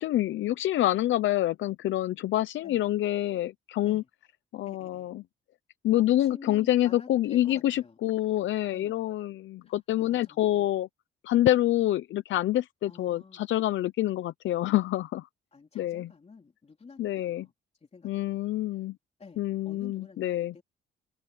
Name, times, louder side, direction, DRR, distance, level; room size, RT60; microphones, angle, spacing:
voice 1, 0.0-4.0 4.5-5.2 5.8-10.9 11.2-15.3 15.7-16.1 17.0-17.5 18.0-19.0 19.4-20.5, left 14 dB, 75° left, 0.7 m, -27 dB
voice 2, 4.6-5.1 6.0-7.9 8.7-8.9 9.6-10.7 12.9-13.4 15.5-17.5 17.8-18.4 19.2-20.6, left 4 dB, 30° left, 3.8 m, -50 dB
open air
cardioid pair, 90°, 20 cm